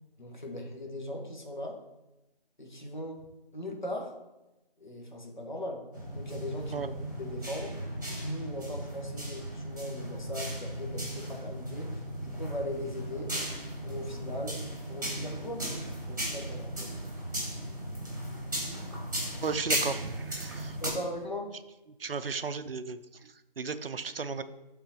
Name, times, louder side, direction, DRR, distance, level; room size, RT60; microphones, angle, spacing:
voice 1, 0.2-1.8 2.6-3.2 3.5-4.1 4.8-5.8 6.1-7.7 8.1-13.3 13.8-14.6 14.9-15.6 16.0-16.9 20.7-21.5, left 1 dB, 55° left, 2 dB, 1.4 m, -39 dB
sound 1, 5.9-20.9, right 1 dB, 20° right, 1.2 m, -36 dB
voice 2, 19.4-20.8 22.0-24.4, right 5 dB, 75° right, 12 dB, 0.5 m, -35 dB
11.0 x 3.9 x 3.0 m, 0.98 s
figure-of-eight pair, 175°, 29 cm